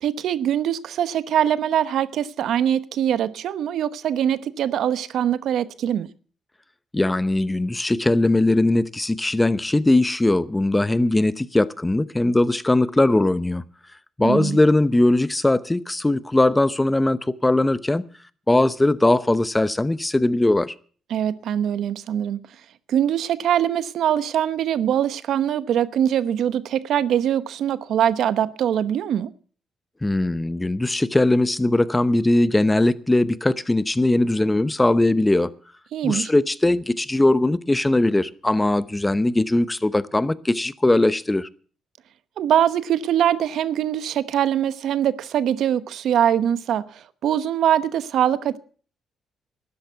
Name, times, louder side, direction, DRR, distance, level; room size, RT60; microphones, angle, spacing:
voice 1, 0.0-6.1 14.2-14.6 21.1-22.4 22.9-29.3 35.9-36.3 42.4-48.6, right 10 dB, 75° right, 0.9 m, -22 dB
voice 2, 6.9-13.6 14.2-18.0 18.5-20.7 30.0-35.5 36.0-41.5, left 2 dB, 15° left, 0.8 m, -20 dB
12.5 x 10.5 x 7.8 m
cardioid pair, 90°, 0 cm